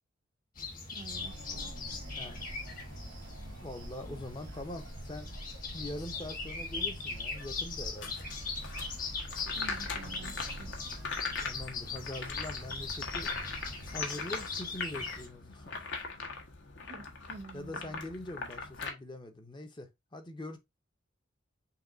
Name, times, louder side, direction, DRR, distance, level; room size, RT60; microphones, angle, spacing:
sound 1, 0.6-15.3, left 4 dB, 45° left, 1.5 m, -40 dB
voice 1, 0.9-1.7 9.5-10.8 16.8-18.0, right 3 dB, 40° right, 0.5 m, -49 dB
sound 2, 1.1-14.0, equal, 90° right, 1.4 m, -46 dB
voice 2, 3.6-5.3 5.7-8.1 11.4-13.3 13.9-15.8 17.5-20.6, left 1 dB, 25° left, 0.7 m, -43 dB
sound 3, 8.0-18.9, left 4 dB, 60° left, 1.1 m, -41 dB
5.7 x 2.4 x 3.9 m
head